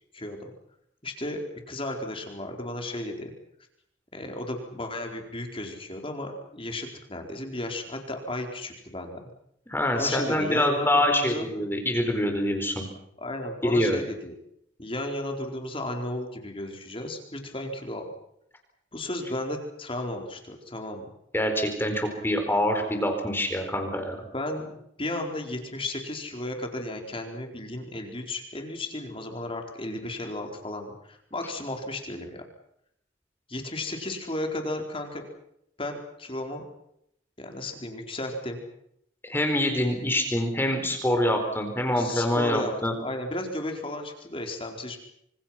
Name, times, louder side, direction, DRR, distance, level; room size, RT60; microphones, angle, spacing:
voice 1, 1.0-1.4 1.7-3.3 4.1-9.2 10.0-11.5 13.2-14.4 14.8-18.0 18.9-21.0 24.3-32.4 33.5-35.3 35.8-36.6 37.4-38.6 41.9-42.7 43.0-45.0, left 1 dB, 25° left, 3 dB, 4.6 m, -34 dB
voice 2, 9.7-12.8 13.6-14.0 21.3-24.2 39.3-42.9, left 1 dB, 10° left, 4 dB, 4.4 m, -25 dB
28.0 x 26.5 x 5.9 m, 0.74 s
head